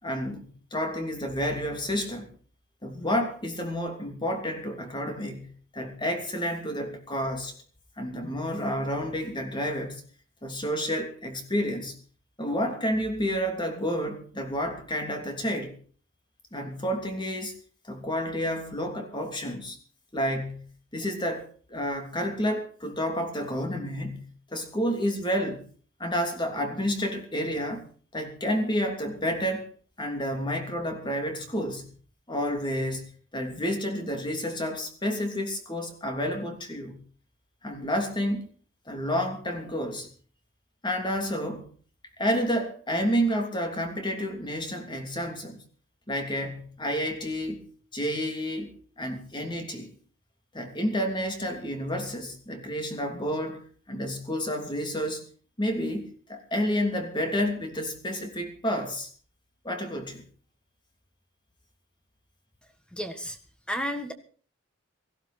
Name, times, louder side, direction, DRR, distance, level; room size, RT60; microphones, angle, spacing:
voice 1, 0.0-2.3 2.8-7.5 8.0-10.0 10.4-12.0 12.4-15.8 16.5-17.5 17.9-19.8 20.1-25.6 26.0-27.8 28.1-29.7 30.0-31.9 32.3-37.0 37.6-38.4 38.9-40.1 40.8-41.7 42.2-45.6 46.1-47.6 47.9-49.9 50.5-55.2 55.6-59.1 59.6-60.2, equal, 20° left, 3.0 m, -30 dB
voice 2, 62.9-63.4 63.7-64.1, equal, 5° left, 1.6 m, -32 dB
18.5 x 14.5 x 4.3 m
head